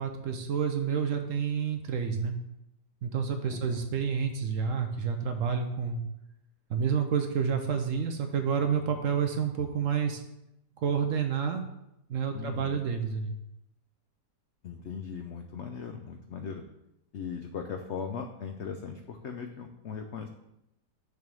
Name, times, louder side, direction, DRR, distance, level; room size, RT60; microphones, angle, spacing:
voice 1, 0.0-2.3 3.0-6.0 6.7-10.2 10.8-11.6 12.1-13.3, right 6 dB, 65° right, 5 dB, 0.8 m, -29 dB
voice 2, 3.5-3.8 12.3-12.8 14.6-16.6 17.1-20.3, left 6 dB, 90° left, 5 dB, 0.6 m, -39 dB
6.6 x 3.5 x 6.1 m, 0.87 s
omnidirectional pair, 1.8 m